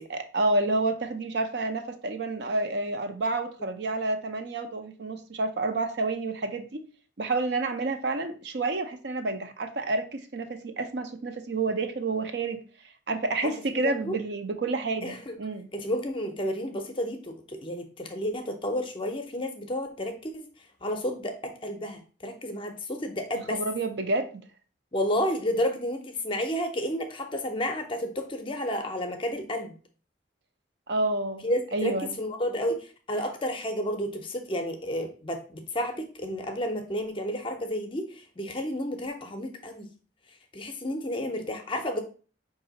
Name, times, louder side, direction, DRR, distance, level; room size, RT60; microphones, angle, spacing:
voice 1, 0.1-6.8 7.2-12.6 13.1-15.7 23.5-24.3 30.9-31.4 31.7-32.2, right 2 dB, 60° right, 0.6 m, -29 dB
voice 2, 13.4-14.2 15.0-15.4 15.7-20.5 20.8-23.6 24.9-29.7 31.4-39.9 40.5-42.0, equal, 25° left, 0.5 m, -31 dB
4.9 x 2.7 x 3.9 m
head